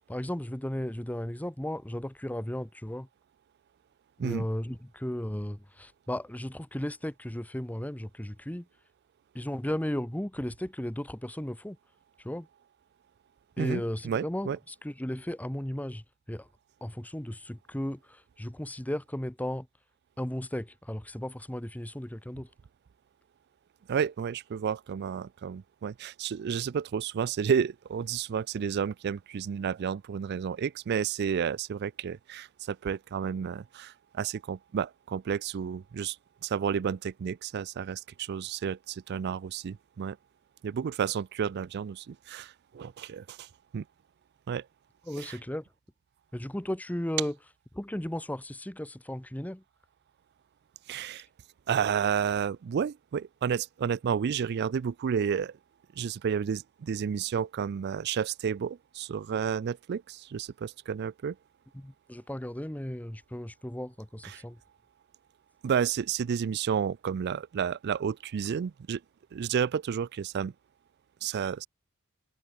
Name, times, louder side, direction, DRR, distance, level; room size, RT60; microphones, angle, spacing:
voice 1, 0.0-3.1 4.2-8.7 9.3-11.8 12.2-12.5 13.6-16.5 16.8-19.7 20.2-22.5 45.1-45.7 46.3-47.3 47.7-49.6 61.7-64.6, left 1 dB, 5° left, 0.8 m, -35 dB
voice 2, 13.6-14.6 23.9-36.2 36.4-40.2 40.6-43.5 43.7-43.8 44.5-44.7 45.2-45.4 50.9-51.3 51.7-55.6 56.0-61.4 64.2-64.4 65.6-69.0 69.3-70.5 71.2-71.7, right 7 dB, 50° right, 0.3 m, -31 dB
head